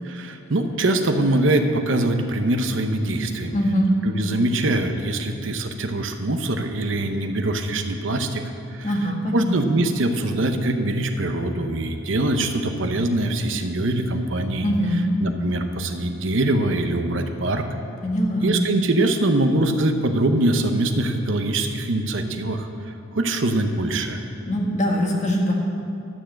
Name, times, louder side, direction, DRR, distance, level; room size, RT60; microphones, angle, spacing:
voice 1, 0.0-3.6 4.0-8.4 8.7-14.7 15.2-17.7 18.4-24.2, right 2 dB, 65° right, 6 dB, 0.8 m, -23 dB
voice 2, 3.5-3.9 8.8-9.5 14.6-15.0 18.0-18.6 24.5-25.5, equal, 40° left, -1 dB, 1.8 m, -22 dB
12.0 x 7.0 x 7.5 m, 2.6 s
head